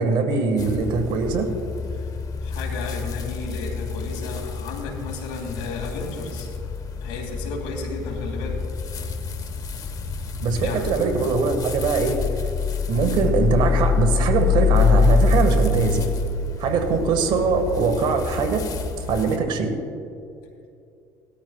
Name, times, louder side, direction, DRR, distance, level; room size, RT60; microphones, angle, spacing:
voice 1, 0.0-1.5 10.4-12.2 12.9-16.0 16.6-18.7 19.1-19.7, right 4 dB, 65° right, 6 dB, 1.7 m, -22 dB
sound 1, 0.6-19.4, left 5 dB, 45° left, 1.3 m, -26 dB
voice 2, 2.4-6.5 7.0-8.6 10.6-10.8, left 3 dB, 85° left, 1 dB, 2.6 m, -33 dB
18.5 x 13.5 x 2.4 m, 2.6 s
supercardioid pair, 90°, 9 cm